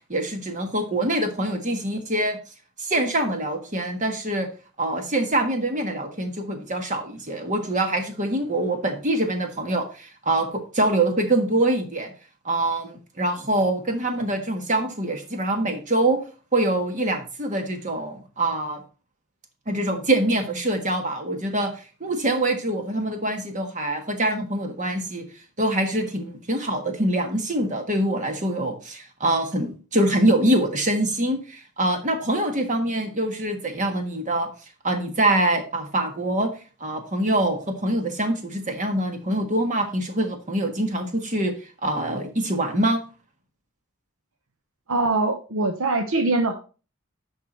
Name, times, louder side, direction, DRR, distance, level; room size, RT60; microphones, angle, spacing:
voice 1, 0.1-2.4 2.8-4.5 4.8-12.1 12.4-16.2 16.5-18.8 19.7-21.7 22.0-25.2 25.6-34.5 34.8-36.5 36.8-41.5 41.8-43.0, right 1 dB, 35° right, 5 dB, 1.5 m, -24 dB
voice 2, 44.9-46.6, right 2 dB, 65° right, 7 dB, 0.8 m, -23 dB
10.5 x 4.7 x 4.5 m, 0.36 s
head